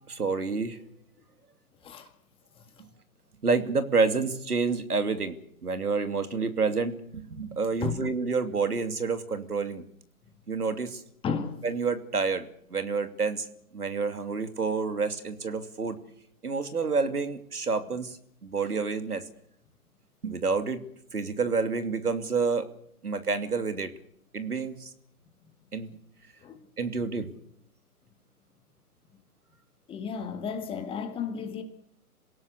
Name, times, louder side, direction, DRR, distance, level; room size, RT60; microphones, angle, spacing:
voice 1, 0.1-0.8 3.4-5.4 5.6-9.8 10.5-11.0 11.6-13.5 13.7-16.0 16.4-18.2 18.4-19.2 20.2-20.8 21.1-22.7 23.0-23.9 24.3-24.9 25.7-26.0 26.8-27.3, right 4 dB, 80° right, 2.8 m, -28 dB
voice 2, 11.2-11.5 26.4-26.6 29.9-31.6, left 6 dB, 10° left, 1.9 m, -33 dB
27.0 x 18.0 x 8.2 m
figure-of-eight pair, 140°, 45 cm